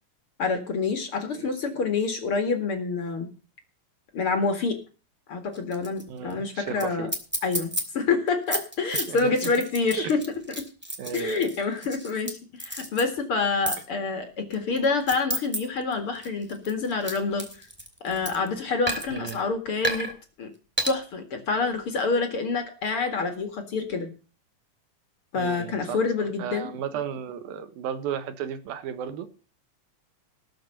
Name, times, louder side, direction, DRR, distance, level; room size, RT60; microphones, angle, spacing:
voice 1, 0.4-3.3 4.1-4.8 5.3-7.1 7.4-10.2 10.6-10.7 11.1-17.5 18.0-20.1 20.4-20.5 20.8-24.1 25.3-26.7, left 4 dB, 45° left, 2.4 m, -27 dB
sound 1, 5.5-6.0 6.3-6.4 6.8-6.9 7.1-7.8 8.3-12.3 12.6-13.0 13.7-13.8 14.5-15.6 15.9-18.5 18.9-19.3 19.8-20.1 20.8-20.9, right 1 dB, 5° right, 2.3 m, -31 dB
voice 2, 6.1-7.1 9.1-9.4 10.0-10.1 11.0-11.4 19.1-19.4 25.4-29.3, right 8 dB, 85° right, 3.1 m, -34 dB
19.0 x 6.7 x 6.6 m
omnidirectional pair, 4.1 m